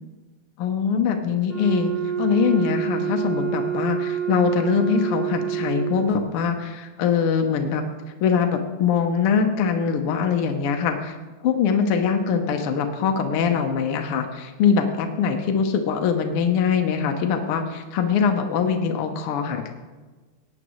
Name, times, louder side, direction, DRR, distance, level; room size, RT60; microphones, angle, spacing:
voice 1, 0.6-7.8 8.2-11.2 11.4-19.7, left 6 dB, 75° left, 4 dB, 1.3 m, -23 dB
Wind instrument woodwind instrument, 1.5-6.1, right 10 dB, 50° right, 4.7 m, -27 dB
18.0 x 9.0 x 3.1 m, 1.3 s
omnidirectional pair, 3.5 m